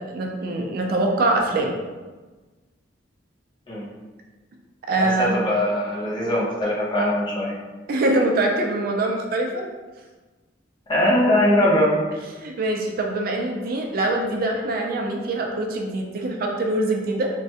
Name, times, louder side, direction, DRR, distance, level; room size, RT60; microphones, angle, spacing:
voice 1, 0.0-1.7 4.9-5.4 7.9-9.7 12.4-17.3, right 2 dB, 50° right, 1 dB, 0.4 m, -23 dB
voice 2, 5.0-7.5 10.9-11.9, left 1 dB, 25° left, -5 dB, 0.6 m, -21 dB
3.1 x 2.2 x 2.7 m, 1.3 s
head